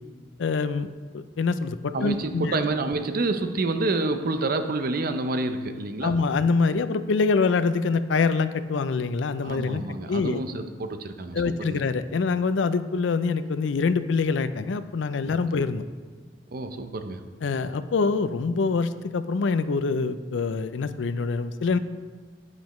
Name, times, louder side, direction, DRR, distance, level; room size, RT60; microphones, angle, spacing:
voice 1, 0.4-0.9 1.1-2.6 6.0-10.4 11.3-15.8 17.4-21.8, left 4 dB, 75° left, 13 dB, 0.4 m, -25 dB
voice 2, 1.9-6.2 9.4-11.8 15.3-15.4 16.5-17.2, right 2 dB, 55° right, 8 dB, 0.6 m, -28 dB
9.6 x 9.2 x 3.1 m, 1.5 s
head